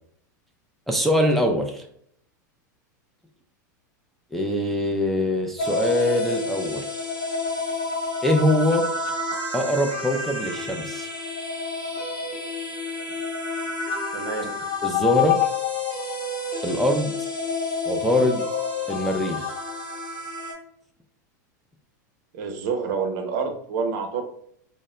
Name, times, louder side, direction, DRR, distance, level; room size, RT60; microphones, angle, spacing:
voice 1, 0.9-1.8 4.3-6.8 8.2-8.8 9.5-11.1 14.8-15.4 16.6-17.1 17.9-18.4 18.9-19.4, left 1 dB, ahead, 1 dB, 0.3 m, -23 dB
sound 1, 5.6-20.5, left 4 dB, 60° left, 1.2 m, -29 dB
voice 2, 14.1-14.5 22.3-24.2, right 5 dB, 65° right, 5 dB, 0.5 m, -28 dB
2.0 x 2.0 x 3.6 m, 0.69 s
hypercardioid pair, 105°, 10 cm